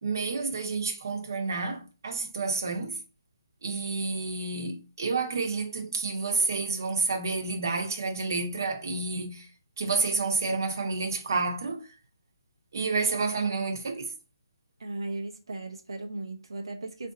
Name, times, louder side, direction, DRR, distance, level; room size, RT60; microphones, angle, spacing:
voice 1, 0.0-3.0 3.6-9.5 9.8-11.9 12.7-14.1, right 4 dB, 45° right, 1.0 m, -29 dB
voice 2, 14.8-17.1, right 2 dB, 80° right, 0.8 m, -37 dB
4.3 x 2.6 x 3.7 m
hypercardioid pair, 175°, 2 cm